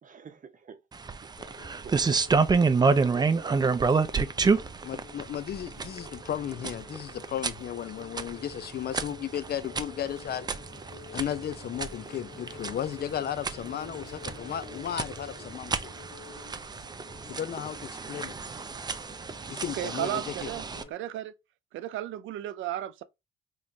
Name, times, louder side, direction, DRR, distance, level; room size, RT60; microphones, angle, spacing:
voice 1, 0.0-0.8 1.1-1.2 1.8-2.2 2.9-3.9, right 5 dB, 40° right, 0.8 m, -44 dB
sound 1, 0.9-20.8, right 4 dB, 20° right, 0.4 m, -30 dB
sound 2, 1.4-20.9, left 5 dB, 30° left, 1.0 m, -50 dB
voice 2, 4.8-10.5 11.1-15.7 17.3-18.3 19.5-20.5, left 10 dB, 50° left, 0.5 m, -35 dB
voice 3, 19.7-21.3 21.7-23.0, right 13 dB, 80° right, 0.5 m, -34 dB
3.5 x 3.1 x 2.7 m
cardioid pair, 90°, 20 cm